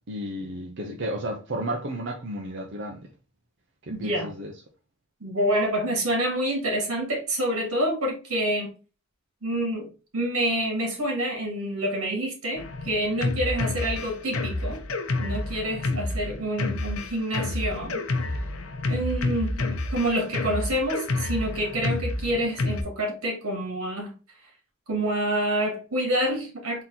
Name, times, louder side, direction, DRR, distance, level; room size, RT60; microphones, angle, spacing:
voice 1, 0.1-3.0 4.0-4.5, right 1 dB, 55° right, 0.7 m, -32 dB
voice 2, 3.9-4.3 5.2-8.7 9.4-9.9 10.1-14.8 15.2-18.0 18.9-24.1 24.9-26.8, right 1 dB, 85° right, 1.9 m, -27 dB
Drum kit, 12.6-22.8, left 2 dB, 75° left, 0.7 m, -29 dB
3.9 x 2.9 x 3.9 m
head